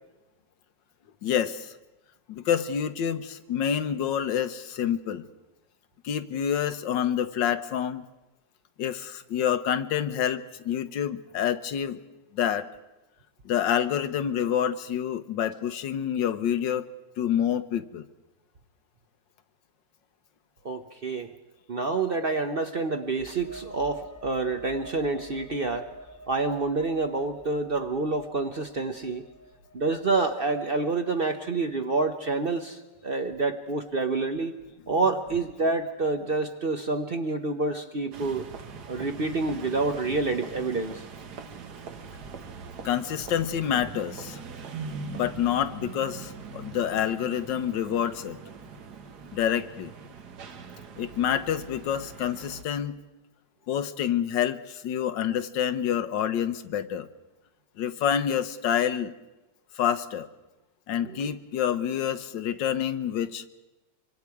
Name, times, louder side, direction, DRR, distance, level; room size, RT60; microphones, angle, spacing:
voice 1, 1.2-1.7 2.3-5.2 6.0-8.0 8.8-12.0 12.3-12.7 13.4-16.9 17.2-18.1 35.0-35.1 42.8-44.4 45.0-48.4 49.3-49.9 51.0-52.9 53.7-57.1 57.8-59.1 59.8-60.3 60.9-63.4, left 9 dB, 85° left, 11 dB, 1.6 m, -27 dB
voice 2, 20.6-21.3 21.7-25.9 26.3-29.2 29.7-34.6 34.9-38.5 38.9-41.0 61.0-61.3, right 3 dB, 45° right, 6 dB, 0.8 m, -28 dB
sound 1, 23.1-30.6, equal, 10° right, 1.0 m, -48 dB
sound 2, 38.1-52.6, right 4 dB, 65° right, 1.7 m, -42 dB
25.5 x 24.5 x 4.7 m, 1.0 s
omnidirectional pair, 1.9 m